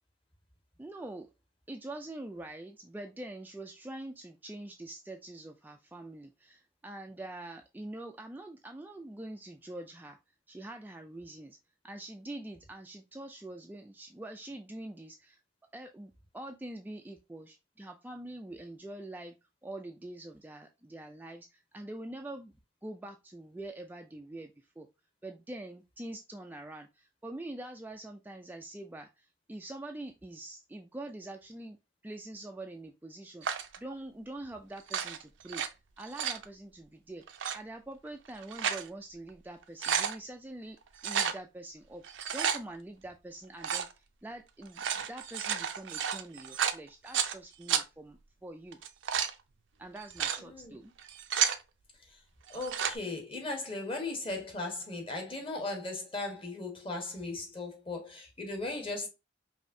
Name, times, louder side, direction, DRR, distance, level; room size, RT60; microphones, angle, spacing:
voice 1, 0.8-1.3 1.7-10.2 10.5-11.6 11.8-15.4 15.7-19.3 19.6-22.5 22.8-24.9 25.2-31.8 32.0-33.5 33.8-35.6 36.0-37.2 37.5-40.8 41.0-42.0 42.3-48.8 49.8-50.9, right 1 dB, 10° right, 0.3 m, -44 dB
sound 1, 33.4-33.8 34.8-35.7 36.0-36.4 37.3-37.6 38.3-38.9 39.3-39.4 39.6-40.2 41.0-41.4 42.0-42.6 43.6-43.9 44.6-47.3 47.7-47.8 48.7-49.3 50.0-50.4 51.0-51.6 52.5-53.0, right 8 dB, 80° right, 0.5 m, -31 dB
voice 2, 50.4-50.7 52.1-52.2 52.5-59.1, left 2 dB, 30° left, 1.3 m, -37 dB
5.1 x 2.7 x 2.6 m
head